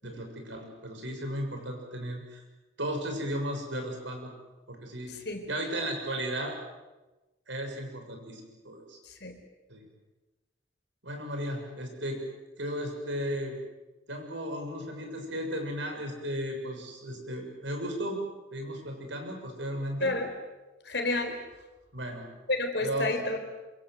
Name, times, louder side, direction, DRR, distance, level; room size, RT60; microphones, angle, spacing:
voice 1, 0.0-2.4 2.8-4.3 4.7-5.1 5.5-6.6 7.5-9.0 9.7-9.9 11.0-12.2 12.6-13.6 14.1-18.2 18.5-20.2 21.9-22.3 22.8-23.1, equal, 80° right, 3 dB, 6.7 m, -35 dB
voice 2, 5.1-5.5 9.0-9.4 20.0-20.3 20.8-21.4 22.5-23.5, left 2 dB, 65° left, 6 dB, 4.2 m, -31 dB
26.5 x 24.5 x 7.8 m, 1.1 s
head